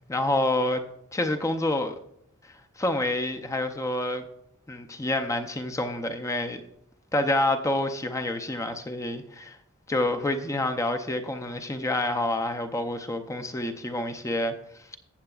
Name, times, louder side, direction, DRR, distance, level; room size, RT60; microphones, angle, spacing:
voice 1, 0.1-0.8 1.1-2.0 2.8-4.2 4.7-6.6 7.1-9.6 9.9-14.6, left 1 dB, 15° left, 0.5 m, -28 dB
14.5 x 7.8 x 2.4 m
head